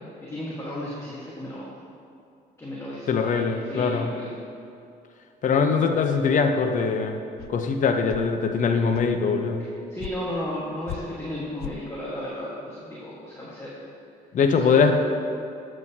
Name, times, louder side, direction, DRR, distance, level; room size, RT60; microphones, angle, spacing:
voice 1, 0.2-1.8 2.6-4.3 9.6-13.7 14.5-14.9, left 1 dB, 15° left, -6 dB, 1.5 m, -34 dB
voice 2, 3.1-4.1 5.4-7.2 7.5-9.6 14.3-14.9, left 5 dB, 50° left, 5 dB, 0.8 m, -22 dB
swooshes and swishes, 7.4-7.5 8.1-8.3 8.9-9.1 10.0-10.1 10.9-11.0 11.6-11.7, left 11 dB, 65° left, 0.5 m, -36 dB
12.0 x 7.9 x 2.8 m, 2.5 s
cardioid pair, 110°, 17 cm